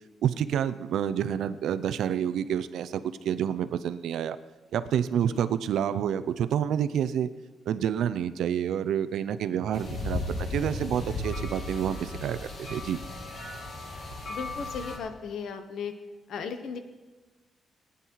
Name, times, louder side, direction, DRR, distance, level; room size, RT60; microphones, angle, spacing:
voice 1, 0.2-4.4 4.7-7.3 7.7-13.0, right 9 dB, 75° right, 13 dB, 0.6 m, -28 dB
sound 1, 9.7-15.0, left 2 dB, 40° left, 2.3 m, -35 dB
voice 2, 14.2-15.9 16.3-16.8, left 6 dB, 60° left, 8 dB, 1.1 m, -36 dB
19.0 x 9.7 x 4.7 m, 1.2 s
wide cardioid pair, 180°, 0 cm